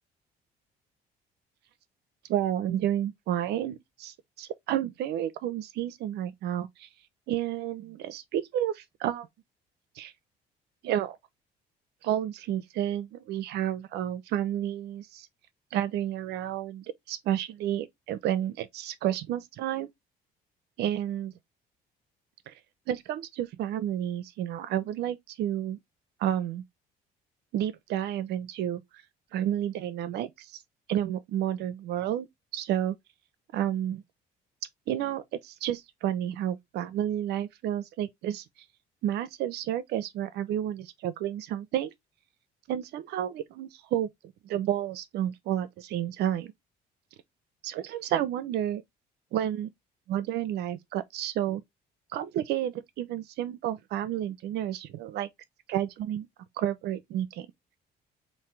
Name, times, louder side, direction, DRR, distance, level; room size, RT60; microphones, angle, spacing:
voice 1, 2.3-6.9 7.3-9.3 10.0-10.1 10.8-11.2 12.0-15.3 15.7-19.9 20.8-21.3 22.9-25.8 26.2-26.6 27.5-28.8 29.3-30.5 30.9-32.3 32.5-33.0 33.5-34.0 34.9-38.4 39.0-41.9 42.7-44.1 44.4-46.5 47.6-48.8 49.3-49.7 50.1-51.6 52.1-55.3 55.7-56.3 56.6-57.5, right 11 dB, 80° right, 0.7 m, -31 dB
5.7 x 2.7 x 3.2 m
cardioid pair, 110°, 17 cm